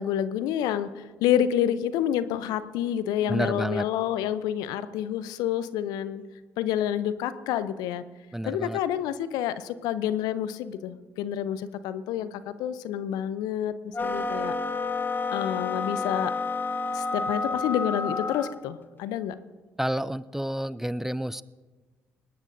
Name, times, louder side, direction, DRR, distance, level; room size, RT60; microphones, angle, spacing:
voice 1, 0.0-6.2 6.6-8.0 8.5-14.5 15.3-16.3 16.9-19.4, left 10 dB, 70° left, 14 dB, 0.6 m, -28 dB
voice 2, 3.3-3.9 8.3-8.8 19.8-21.4, right 1 dB, 5° right, 18 dB, 0.4 m, -29 dB
sound 1, 13.9-18.6, left 4 dB, 30° left, 1.0 m, -29 dB
20.0 x 19.0 x 2.6 m, 1.4 s
hypercardioid pair, 45°, 7 cm